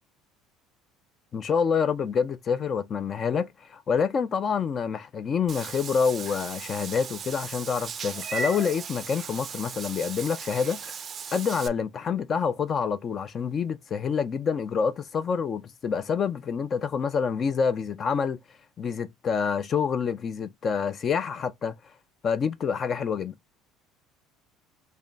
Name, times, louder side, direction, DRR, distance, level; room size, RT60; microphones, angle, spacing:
voice 1, 1.3-11.0 11.3-18.4 18.8-21.7 22.2-23.4, left 6 dB, 35° left, 0.4 m, -27 dB
Meow / Water / Bathtub (filling or washing), 5.5-11.7, right 5 dB, 30° right, 0.4 m, -37 dB
3.4 x 2.2 x 3.8 m
cardioid pair, 125°, 0 cm